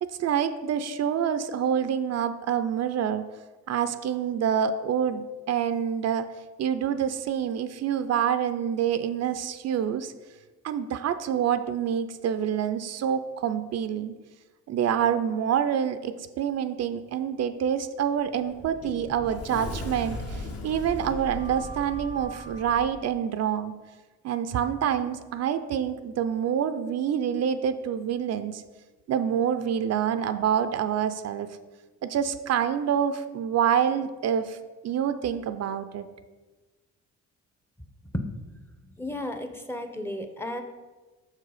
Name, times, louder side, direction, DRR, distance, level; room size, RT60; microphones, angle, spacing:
voice 1, 0.0-3.2 3.7-5.2 5.5-6.3 6.6-10.1 10.6-14.1 14.7-23.7 24.2-28.6 29.1-31.5 32.0-34.6 34.8-36.1, right 8 dB, 55° right, 10 dB, 0.5 m, -27 dB
Sliding door, 18.1-22.9, left 2 dB, 50° left, 1.1 m, -38 dB
voice 2, 39.0-40.6, left 1 dB, 10° left, 7 dB, 0.7 m, -33 dB
5.9 x 4.7 x 4.9 m, 1.3 s
cardioid pair, 90°, 30 cm